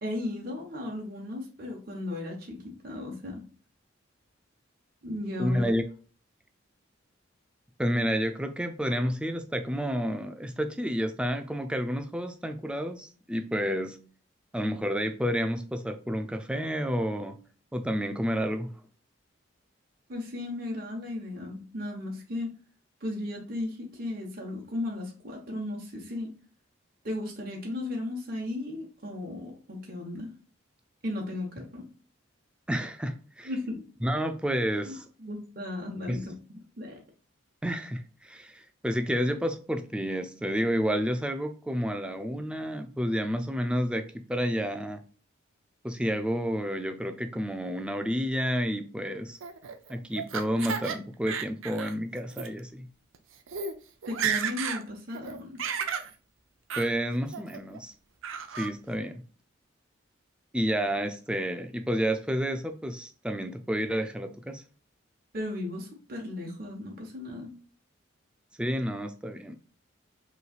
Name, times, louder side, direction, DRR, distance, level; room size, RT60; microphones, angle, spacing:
voice 1, 0.0-3.4 5.0-5.6 20.1-22.5 23.0-26.3 27.0-30.3 31.0-31.8 33.4-33.8 34.8-34.9 35.2-37.0 54.1-55.6 65.3-67.5, left 1 dB, 50° right, 1.0 m, -35 dB
voice 2, 5.4-5.8 7.8-14.0 14.5-17.4 17.7-18.7 32.7-33.5 34.0-35.0 36.1-36.2 37.6-45.0 45.8-49.4 49.9-52.9 56.8-57.9 58.6-59.2 60.5-64.6 68.6-69.5, equal, 5° right, 0.4 m, -30 dB
Laughter, 49.4-51.0 51.3-51.9 52.3-52.5 53.1-53.2 53.5-53.7 54.0-54.8 55.1-56.1 56.7-56.9 57.3-57.8 58.2-58.7, right 7 dB, 85° right, 0.6 m, -33 dB
5.3 x 3.2 x 2.3 m
head